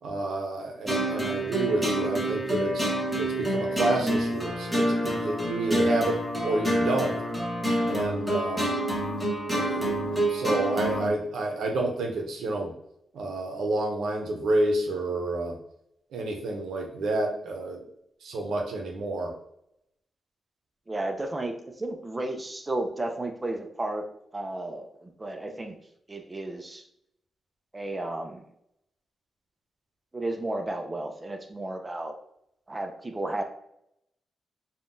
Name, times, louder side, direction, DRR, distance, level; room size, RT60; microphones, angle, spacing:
voice 1, 0.0-2.9 3.1-7.2 7.8-8.7 9.5-12.7 13.1-15.6 16.1-17.8 18.2-19.3, right 2 dB, 90° right, 2 dB, 0.6 m, -29 dB
sound 1, 0.9-11.1, right 1 dB, ahead, 1.0 m, -27 dB
voice 2, 20.9-24.1 24.3-25.8 26.1-26.8 27.7-28.4 30.1-32.1 32.7-33.4, right 2 dB, 20° right, 4 dB, 0.4 m, -33 dB
3.5 x 2.2 x 2.5 m, 0.75 s
cardioid pair, 115°, 0 cm